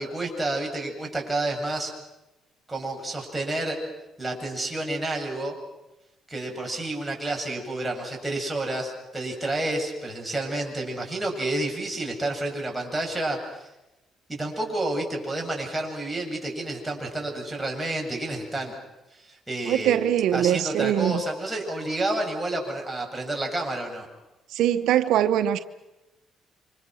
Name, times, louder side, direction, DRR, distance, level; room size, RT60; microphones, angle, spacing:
voice 1, 0.0-1.9 2.7-3.8 4.2-5.6 6.3-13.7 14.3-18.8 19.1-20.0 20.3-24.1, right 2 dB, 10° right, 0 dB, 7.7 m, -30 dB
voice 2, 19.7-21.2 24.5-25.6, right 11 dB, 85° right, 9 dB, 0.9 m, -22 dB
29.0 x 25.5 x 6.3 m, 0.99 s
cardioid pair, 90°, 0 cm